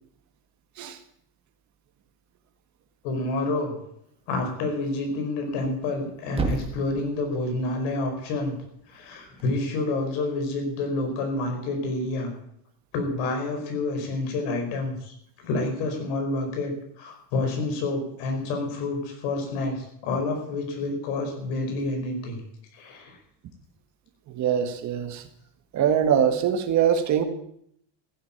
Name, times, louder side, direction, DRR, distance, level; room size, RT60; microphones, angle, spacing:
voice 1, 3.0-3.7 4.3-8.5 8.9-12.3 12.9-16.7 17.0-22.4 22.7-23.2, left 2 dB, 80° left, 3 dB, 5.2 m, -28 dB
Thump thud, 5.5-9.6, right 4 dB, 15° right, 1.8 m, -36 dB
voice 2, 24.3-25.3 25.7-27.2, right 8 dB, 40° right, 8 dB, 1.7 m, -23 dB
15.0 x 8.7 x 8.7 m, 0.71 s
cardioid pair, 160°, 43 cm